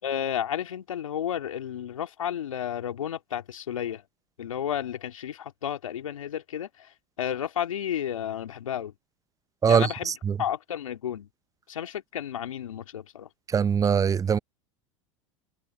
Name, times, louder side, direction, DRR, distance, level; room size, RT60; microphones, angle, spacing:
voice 1, 0.0-4.0 4.4-8.9 9.7-10.1 10.4-11.3 11.7-13.3, left 10 dB, 85° left, 2.9 m, -32 dB
voice 2, 9.6-10.3 13.5-14.4, right 7 dB, 20° right, 0.6 m, -22 dB
hypercardioid pair, 90°, 17 cm